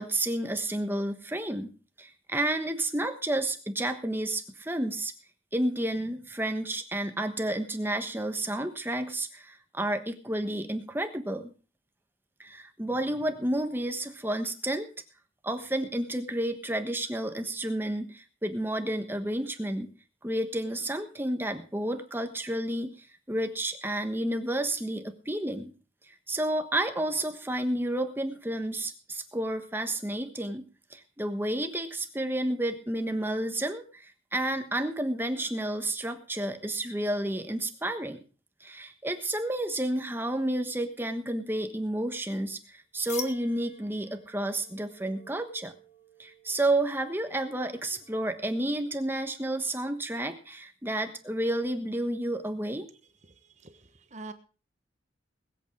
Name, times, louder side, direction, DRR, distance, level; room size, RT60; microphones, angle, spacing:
voice 1, 0.0-1.7 2.0-5.1 5.5-11.5 12.4-14.9 15.4-19.9 20.2-25.7 26.3-38.2 38.6-45.7 46.2-52.9, right 1 dB, 10° right, 7 dB, 1.2 m, -31 dB
sound 1, 43.1-48.6, left 5 dB, 40° left, 1.6 m, -47 dB
voice 2, 53.3-54.3, right 2 dB, 40° right, 8 dB, 1.2 m, -46 dB
20.5 x 8.3 x 4.8 m, 0.37 s
head